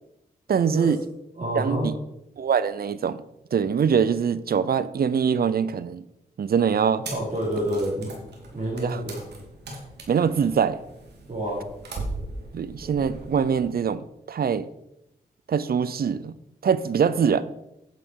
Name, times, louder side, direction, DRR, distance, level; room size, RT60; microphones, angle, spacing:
voice 1, 0.5-1.0 1.5-1.9 2.4-3.2 3.5-6.0 6.4-7.0 8.8-9.0 10.1-10.8 12.5-14.7 15.5-16.4 16.6-17.4, right 7 dB, 65° right, 16 dB, 0.7 m, -23 dB
voice 2, 1.4-1.9 7.1-8.1 8.5-9.2 11.3-11.7, right 1 dB, 45° right, -5 dB, 4.3 m, -28 dB
sound 1, 7.0-13.7, right 2 dB, 85° right, 2.6 m, -39 dB
9.1 x 7.7 x 4.8 m, 0.84 s
cardioid pair, 50°, 17 cm